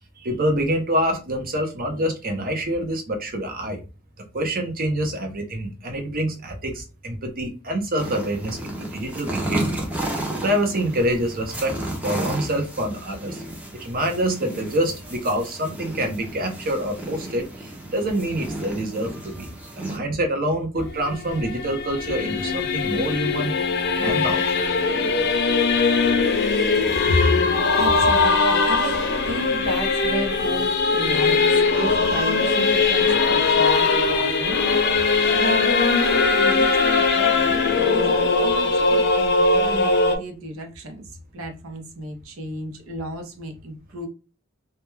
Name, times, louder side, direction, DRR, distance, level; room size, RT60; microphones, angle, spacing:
voice 1, 0.2-3.8 4.2-9.8 10.4-11.7 12.0-13.4 13.7-19.5 19.8-23.5 24.0-24.6, right 1 dB, 45° right, 0.7 m, -26 dB
sound 1, 8.0-20.0, right 1 dB, 5° right, 0.5 m, -33 dB
Singing / Musical instrument, 20.8-40.2, left 4 dB, 55° left, 0.5 m, -20 dB
voice 2, 27.7-35.1 35.3-44.1, equal, 80° right, 0.7 m, -32 dB
2.2 x 2.2 x 3.0 m
head